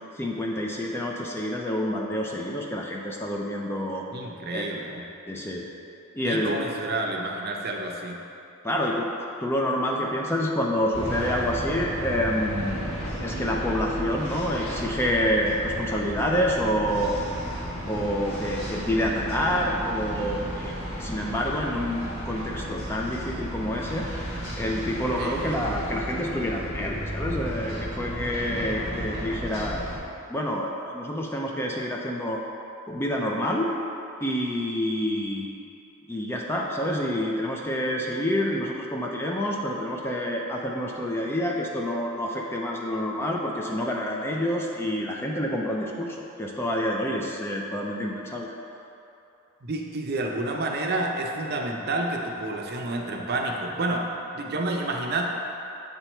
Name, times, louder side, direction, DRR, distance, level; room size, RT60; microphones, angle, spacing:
voice 1, 0.2-4.1 4.5-4.7 5.3-5.6 6.1-6.6 8.6-9.1 9.4-12.7 13.2-17.2 17.9-24.1 24.6-29.8 30.3-32.4 32.9-33.7 34.2-35.5 36.1-48.5, equal, 10° left, -1 dB, 0.3 m, -28 dB
voice 2, 4.1-5.1 6.2-8.2 25.2-25.5 49.6-54.1 54.3-55.2, right 2 dB, 45° right, 0 dB, 0.6 m, -29 dB
sound 1, 10.9-30.0, equal, 70° left, 1.4 m, -33 dB
7.7 x 3.0 x 4.4 m, 2.8 s
head